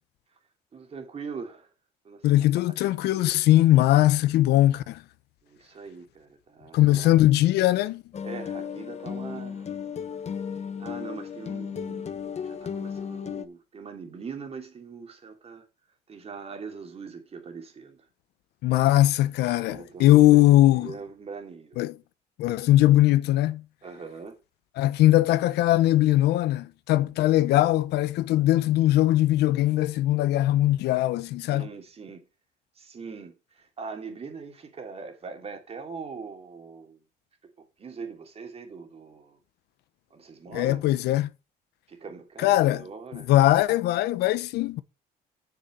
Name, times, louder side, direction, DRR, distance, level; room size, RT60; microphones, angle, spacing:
voice 1, 0.7-1.7 2.0-2.9 5.4-7.2 8.2-9.7 10.8-15.6 16.1-18.0 19.6-21.8 23.8-24.4 31.5-32.2 32.8-37.0 37.6-39.4 40.1-40.8 41.9-43.3, right 5 dB, 35° right, 3.0 m, -41 dB
voice 2, 2.2-5.0 6.7-8.0 18.6-20.9 21.8-22.0 22.4-23.6 24.8-31.7 40.5-41.3 42.4-42.8 43.1-44.8, left 15 dB, 80° left, 0.8 m, -20 dB
sound 1, 8.1-13.5, left 7 dB, 40° left, 1.1 m, -35 dB
6.9 x 6.4 x 7.8 m
cardioid pair, 110°, 17 cm